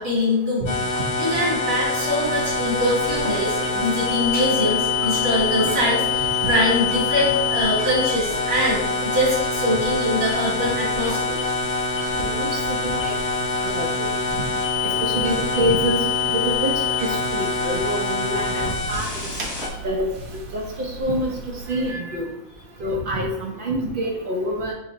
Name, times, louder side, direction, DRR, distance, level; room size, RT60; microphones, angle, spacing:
voice 1, 0.0-11.4, left 1 dB, 50° right, -6 dB, 1.4 m, -23 dB
sound 1, 0.7-19.7, left 4 dB, 60° left, 1.0 m, -25 dB
sound 2, 2.2-21.9, right 3 dB, 85° right, 1.1 m, -39 dB
voice 2, 6.4-6.7 7.1-7.3 12.2-13.1 13.6-14.1 14.8-16.7 17.0-19.2 19.8-20.1 20.5-21.3 21.7-22.3 22.8-24.7, right 1 dB, 65° right, -1 dB, 0.5 m, -26 dB
2.8 x 2.5 x 3.9 m, 0.85 s
omnidirectional pair, 1.4 m